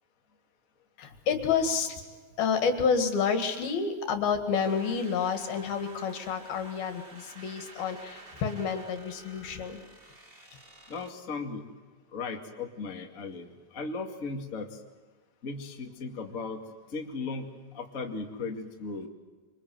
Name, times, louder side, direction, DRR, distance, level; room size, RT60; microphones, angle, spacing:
voice 1, 1.0-2.0 2.4-9.8, left 6 dB, 75° left, 6 dB, 3.8 m, -29 dB
sound 1, 4.5-11.1, right 2 dB, 30° right, 1.0 m, -51 dB
voice 2, 10.9-11.6 12.1-13.5 13.7-14.8 15.4-16.6 16.9-17.5 17.7-19.1, left 4 dB, 25° left, 2 dB, 2.0 m, -36 dB
26.5 x 25.0 x 7.9 m, 1.4 s
omnidirectional pair, 4.5 m